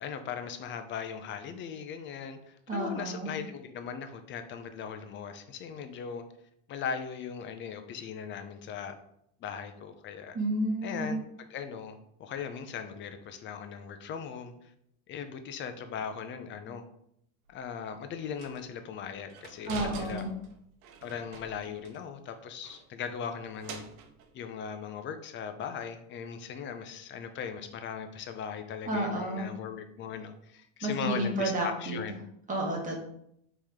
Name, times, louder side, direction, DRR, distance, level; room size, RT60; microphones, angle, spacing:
voice 1, 0.0-6.2 6.7-8.9 9.4-10.4 10.8-14.7 15.1-16.8 17.5-20.2 21.0-23.8 24.3-32.2, left 7 dB, 30° left, 8 dB, 0.5 m, -39 dB
voice 2, 2.7-3.3 10.3-11.1 19.6-20.3 28.9-29.4 30.8-32.0 32.5-33.0, right 1 dB, 20° right, -1 dB, 1.4 m, -31 dB
sound 1, 17.5-17.6 18.4-18.7 19.3-22.0 22.3-22.4 22.6-24.3, right 4 dB, 90° right, 0.9 m, -45 dB
4.6 x 3.1 x 3.5 m, 0.73 s
supercardioid pair, 130°, 40 cm